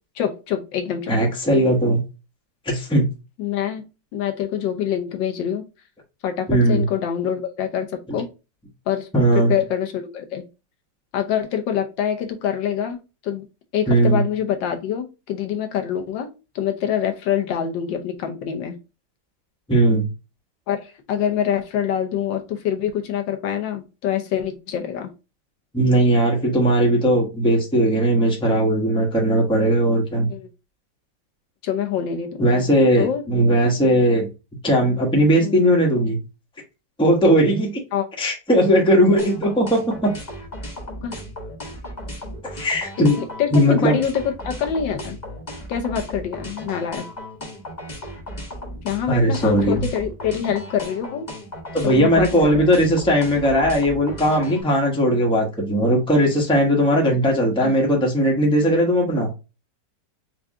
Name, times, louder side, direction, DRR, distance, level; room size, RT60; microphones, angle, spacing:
voice 1, 0.1-1.1 3.4-3.8 4.1-5.6 6.2-8.3 8.9-9.1 9.3-10.5 11.1-13.4 13.7-16.3 16.5-18.8 20.7-25.1 30.3-30.5 31.6-32.6 33.0-33.2 35.4-35.5 37.9-38.1 41.0-41.2 43.2-45.2 45.7-47.0 48.8-51.3 51.8-52.3 57.1-57.2 57.6-57.7, left 9 dB, 85° left, 5 dB, 1.5 m, -25 dB
voice 2, 1.1-2.0 2.6-3.1 6.5-6.8 8.1-8.2 9.1-9.5 13.9-14.2 19.7-20.0 25.7-30.3 32.4-34.3 34.6-36.2 37.0-37.7 38.2-40.1 42.5-43.2 43.5-44.0 49.1-49.8 51.7-59.3, equal, 5° left, -1 dB, 0.9 m, -18 dB
sound 1, 39.2-54.6, equal, 25° left, 1.2 m, -35 dB
4.6 x 2.5 x 3.5 m, 0.29 s
omnidirectional pair, 2.0 m